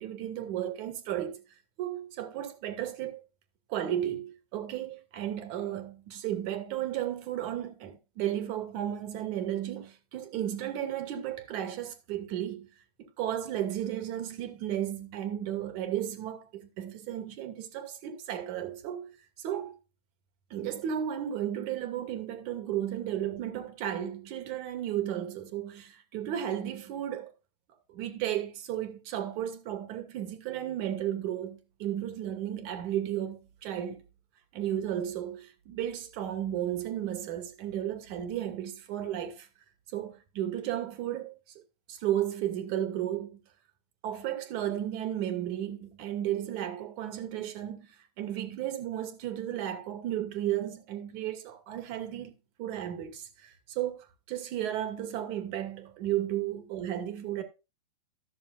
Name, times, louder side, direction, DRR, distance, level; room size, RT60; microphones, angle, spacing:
voice 1, 0.0-1.4 1.8-3.2 3.7-12.7 13.2-19.1 19.4-19.7 20.5-27.3 27.9-34.0 34.5-39.5 39.9-41.3 41.9-43.4 44.0-47.9 48.2-52.3 52.6-57.4, right 11 dB, 45° right, 2.2 m, -34 dB
14.0 x 6.8 x 2.6 m
hypercardioid pair, 120°, 20 cm